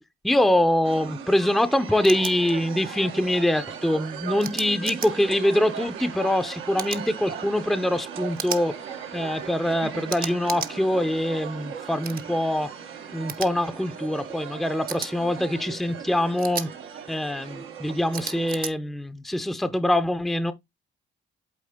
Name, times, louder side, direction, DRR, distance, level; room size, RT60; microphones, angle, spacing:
voice 1, 0.2-8.8 9.1-12.7 13.1-16.7 17.1-20.5, left 1 dB, ahead, 0.6 m, -24 dB
sound 1, 0.8-18.7, right 8 dB, 85° right, 1.2 m, -38 dB
sound 2, 2.0-2.3 4.4-5.1 6.8-7.0 8.4-8.6 10.1-10.7 12.0-12.2 13.3-13.5 14.9-15.1 16.4-16.7 18.1-18.7, right 7 dB, 45° right, 0.8 m, -33 dB
8.6 x 3.6 x 3.6 m
cardioid pair, 90°, 20 cm